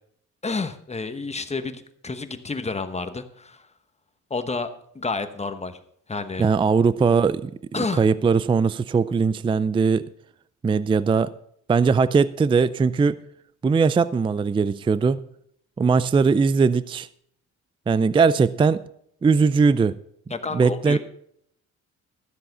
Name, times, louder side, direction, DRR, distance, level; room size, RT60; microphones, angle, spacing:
voice 1, 0.4-3.7 4.3-5.8 6.1-6.5 7.7-8.0 20.3-21.0, left 3 dB, 20° left, 9 dB, 1.1 m, -30 dB
voice 2, 6.4-10.0 10.6-11.3 11.7-13.2 13.6-15.2 15.8-17.1 17.9-18.8 19.2-20.0 20.5-21.0, right 5 dB, 20° right, 17 dB, 0.4 m, -20 dB
13.5 x 7.5 x 5.4 m, 0.69 s
cardioid pair, 90°, 30 cm